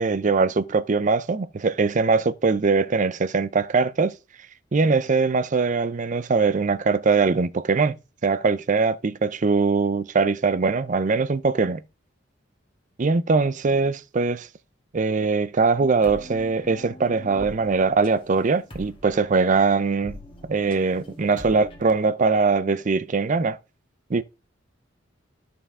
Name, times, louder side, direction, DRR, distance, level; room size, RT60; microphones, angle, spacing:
voice 1, 0.0-4.1 4.7-7.9 8.2-11.8 13.0-14.5 14.9-20.2 20.4-23.6 24.1-24.2, right 4 dB, 40° right, 0.5 m, -22 dB
sound 1, 16.0-21.9, left 1 dB, 25° left, 1.7 m, -43 dB
13.5 x 5.6 x 3.6 m
head